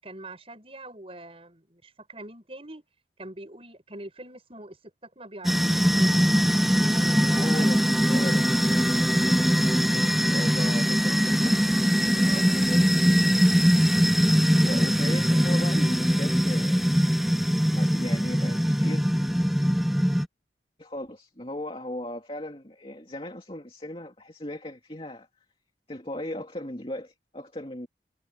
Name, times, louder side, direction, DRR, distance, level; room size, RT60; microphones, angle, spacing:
voice 1, 0.0-2.8 3.2-6.2 6.9-7.7 8.1-8.4 12.2-12.6, right 2 dB, 30° right, 7.3 m, -43 dB
sound 1, 5.4-20.3, equal, ahead, 1.0 m, -22 dB
voice 2, 7.3-8.5 10.2-11.7 12.1-13.4 14.6-17.0 17.7-19.0 20.8-25.3 25.9-27.9, left 1 dB, 30° left, 2.6 m, -37 dB
head